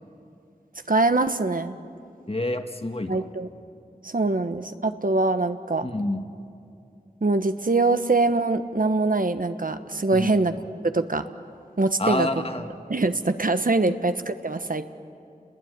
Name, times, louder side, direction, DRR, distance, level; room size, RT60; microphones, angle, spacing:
voice 1, 0.9-1.8 3.1-3.5 4.0-5.9 7.2-10.5 10.8-11.3 11.8-12.3 12.9-14.9, right 3 dB, 65° right, 9 dB, 1.2 m, -23 dB
voice 2, 2.3-3.3 5.8-6.2 10.1-10.3 12.0-12.7 13.9-14.0, left 1 dB, 40° left, 6 dB, 1.8 m, -28 dB
29.5 x 20.5 x 9.7 m, 2.5 s
wide cardioid pair, 40°, 16 cm